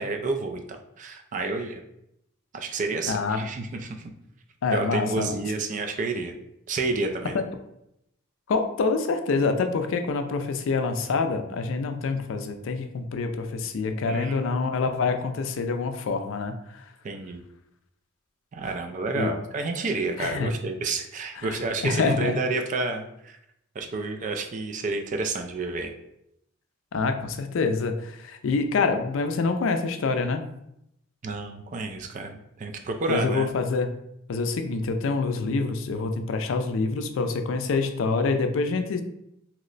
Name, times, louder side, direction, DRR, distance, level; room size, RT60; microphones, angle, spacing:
voice 1, 0.0-1.8 2.5-4.1 4.7-6.3 6.7-7.5 14.1-15.0 17.0-17.4 18.5-23.4 23.8-25.9 31.2-33.5, right 3 dB, 40° right, 5 dB, 0.3 m, -30 dB
voice 2, 3.1-3.4 4.6-5.4 7.3-7.4 8.5-16.8 19.1-19.3 20.2-20.5 21.5-21.6 21.8-22.4 26.9-30.4 33.1-33.9 34.3-39.0, left 4 dB, 65° left, 7 dB, 0.4 m, -26 dB
2.9 x 2.1 x 3.8 m, 0.80 s
head